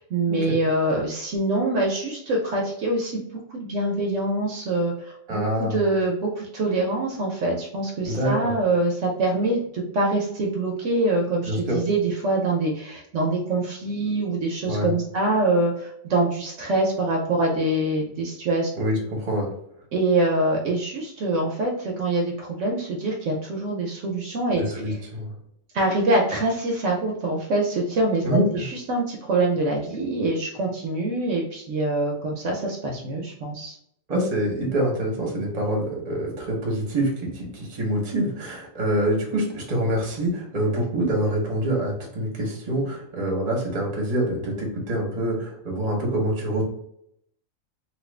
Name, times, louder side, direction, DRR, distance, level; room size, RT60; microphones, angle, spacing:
voice 1, 0.0-3.2 3.5-18.7 19.9-25.0 25.7-28.2 28.5-33.7, right 2 dB, 70° right, 0 dB, 0.9 m, -24 dB
voice 2, 5.3-5.8 8.0-8.5 11.4-11.8 14.7-14.9 18.8-19.5 24.6-25.3 28.2-28.7 34.1-46.6, right 1 dB, 35° right, -1 dB, 0.9 m, -25 dB
2.9 x 2.4 x 3.2 m, 0.72 s
omnidirectional pair, 1.4 m